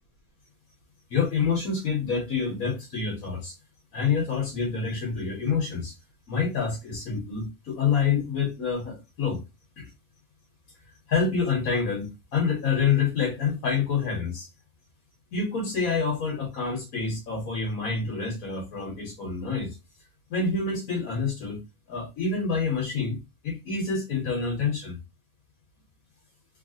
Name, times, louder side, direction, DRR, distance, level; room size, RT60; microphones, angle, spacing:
voice 1, 1.1-3.6 3.9-5.9 6.3-9.4 9.8-9.9 11.1-14.5 15.3-19.8 20.3-21.6 21.9-25.0, left 5 dB, 70° left, 0 dB, 1.3 m, -27 dB
3.2 x 2.4 x 2.7 m, 0.25 s
omnidirectional pair, 1.6 m